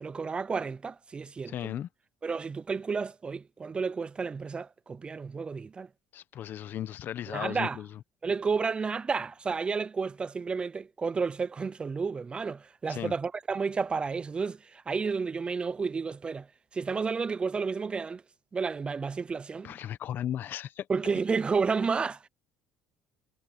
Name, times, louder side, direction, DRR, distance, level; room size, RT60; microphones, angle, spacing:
voice 1, 0.0-1.7 2.2-5.9 7.3-7.8 8.2-16.5 16.7-18.2 18.5-19.7 20.9-22.3, right 5 dB, 25° right, 0.5 m, -31 dB
voice 2, 1.5-1.9 6.1-7.9 12.9-13.1 19.6-20.9, left 11 dB, 50° left, 1.1 m, -36 dB
cardioid pair, 110°, 4 cm